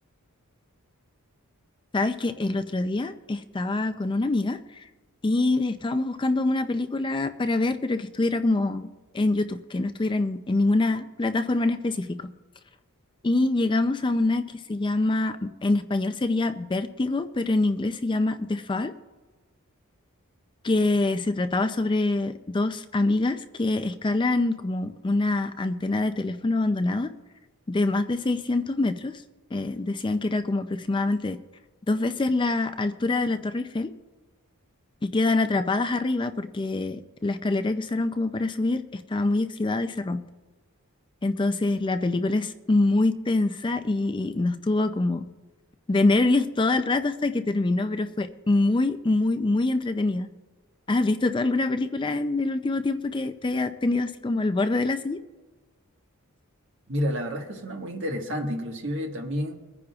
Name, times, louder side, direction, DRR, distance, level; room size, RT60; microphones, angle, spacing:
voice 1, 1.9-4.9 5.2-8.9 9.1-12.3 13.2-18.9 20.6-27.1 27.7-29.2 29.5-31.4 31.9-33.9 35.0-40.2 41.2-45.3 45.9-50.3 50.9-55.2, left 2 dB, 20° left, 0.4 m, -25 dB
voice 2, 56.9-59.5, equal, 55° right, 1.5 m, -30 dB
23.0 x 9.9 x 2.4 m
head